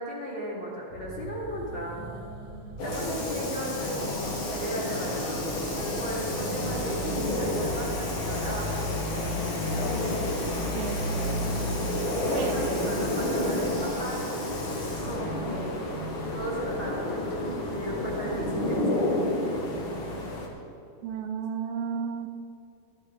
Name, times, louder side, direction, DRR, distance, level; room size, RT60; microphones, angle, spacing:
voice 1, 0.0-2.1 2.8-5.3 5.8-9.9 12.2-14.2 15.0-16.0 16.3-17.3 17.7-19.0, equal, 30° left, -6 dB, 2.9 m, -36 dB
sound 1, 0.9-18.9, right 2 dB, 55° right, 1.5 m, -43 dB
Water tap faucet / Sink (filling or washing), 2.8-15.3, left 2 dB, 85° left, 4.5 m, -40 dB
sound 2, 2.8-20.5, left 1 dB, 60° left, 1.3 m, -30 dB
voice 2, 10.8-11.2 12.4-12.6 21.0-22.3, right 7 dB, 85° right, 5 dB, 2.4 m, -33 dB
12.0 x 12.0 x 4.9 m, 2.6 s
omnidirectional pair, 4.2 m